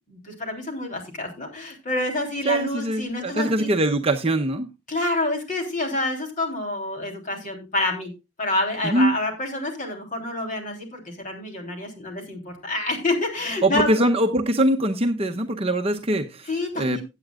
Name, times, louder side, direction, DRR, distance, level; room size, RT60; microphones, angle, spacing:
voice 1, 0.1-3.7 4.9-8.1 8.4-13.9 16.5-17.0, left 2 dB, 45° left, 2 dB, 3.3 m, -28 dB
voice 2, 2.4-4.7 8.8-9.1 13.6-16.5 16.8-17.0, right 1 dB, 30° right, 4 dB, 0.8 m, -22 dB
16.5 x 9.0 x 2.4 m, 0.25 s
head